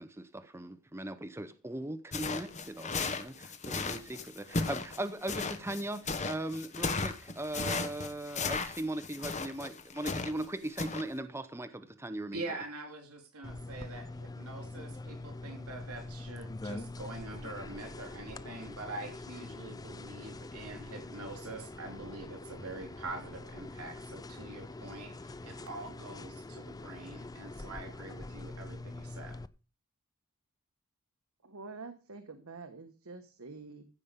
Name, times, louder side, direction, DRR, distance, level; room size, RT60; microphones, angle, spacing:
voice 1, 0.0-12.4, right 1 dB, 10° right, 0.8 m, -39 dB
sound 1, 2.1-10.5 10.8-11.0, left 4 dB, 35° left, 1.2 m, -35 dB
voice 2, 12.3-29.4, right 2 dB, 85° right, 3.7 m, -44 dB
sound 2, 13.4-29.5, left 2 dB, 15° left, 0.5 m, -44 dB
voice 3, 31.4-33.9, right 3 dB, 70° right, 1.3 m, -47 dB
15.5 x 5.3 x 6.8 m
head